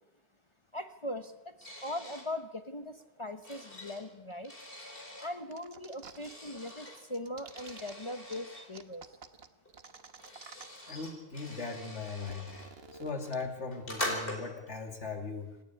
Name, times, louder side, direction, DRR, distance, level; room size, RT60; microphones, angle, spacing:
voice 1, 0.7-4.5 5.2-9.1 12.8-13.0, left 1 dB, 30° left, 8 dB, 0.9 m, -40 dB
sound 1, 1.6-2.3 3.0-5.3 6.1-7.0 7.5-8.7 9.7-9.8 9.9-12.7 13.2-14.7, left 1 dB, 55° left, 4.8 m, -42 dB
sound 2, 5.5-6.3 6.6-7.9 8.3-8.4 8.7-10.9 11.2-11.3 11.5-13.3, right 6 dB, 60° right, 1.3 m, -51 dB
voice 2, 10.9-12.5 13.0-15.6, left 4 dB, 90° left, 4 dB, 2.7 m, -39 dB
27.0 x 10.5 x 9.8 m, 0.99 s
omnidirectional pair, 1.2 m